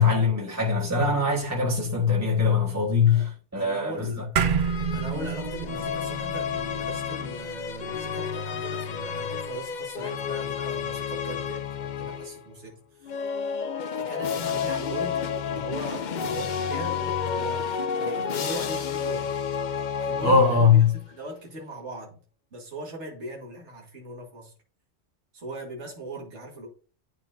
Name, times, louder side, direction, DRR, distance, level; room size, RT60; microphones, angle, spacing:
voice 1, 0.0-4.1 20.2-20.9, left 5 dB, 15° right, 1.5 m, -21 dB
voice 2, 3.5-4.3 4.9-13.2 14.0-19.3 20.0-22.2 22.5-24.5 25.3-26.7, right 1 dB, 75° right, 2.0 m, -39 dB
sound 1, 4.4-9.0, right 6 dB, 55° right, 0.7 m, -30 dB
sound 2, 4.6-12.4 13.0-21.0, left 7 dB, 55° left, 0.6 m, -31 dB
11.5 x 4.2 x 2.6 m
omnidirectional pair, 1.2 m